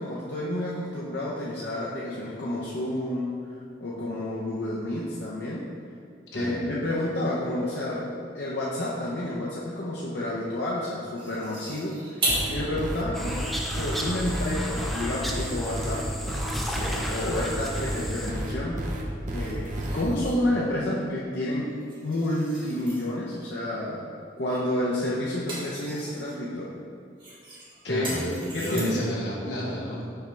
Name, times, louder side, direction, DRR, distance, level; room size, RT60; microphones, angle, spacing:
voice 1, 0.0-5.7 6.3-12.2 12.5-16.1 16.7-18.8 19.3-21.7 22.0-24.1 24.4-26.8 27.9-28.2 28.5-29.0, left 1 dB, 75° left, -7 dB, 0.7 m, -30 dB
sound 1, 11.2-12.6 13.1-13.2 13.7-15.0 16.5-17.7 19.3-20.5 21.7-23.0 24.5-24.7 25.1-26.4 27.2-29.2, right 1 dB, 30° right, 1.3 m, -37 dB
sound 2, 12.3-20.0, right 1 dB, 45° right, 0.7 m, -32 dB
sound 3, 13.1-18.3, equal, ahead, 0.4 m, -34 dB
voice 2, 27.8-30.0, equal, 90° left, -5 dB, 1.4 m, -31 dB
5.7 x 3.4 x 5.1 m, 2.3 s
head